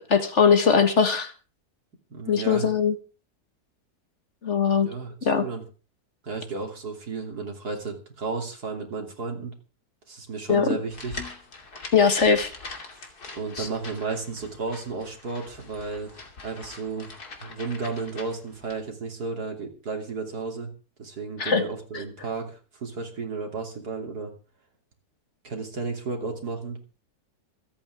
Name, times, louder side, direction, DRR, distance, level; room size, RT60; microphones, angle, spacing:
voice 1, 0.1-1.3 2.3-2.9 4.4-4.9 5.2-5.5 10.5-10.8 11.9-12.5 13.6-13.7 21.4-21.7 21.9-22.0, left 6 dB, 50° left, 8 dB, 1.8 m, -20 dB
voice 2, 2.1-2.7 4.7-5.6 6.2-9.5 10.1-11.2 13.3-16.1 16.4-20.7 21.0-24.3 25.4-26.8, right 4 dB, 85° right, 2 dB, 3.5 m, -33 dB
sound 1, 10.9-18.8, left 3 dB, 80° left, 3.2 m, -43 dB
26.5 x 8.9 x 3.5 m, 0.35 s
omnidirectional pair, 1.6 m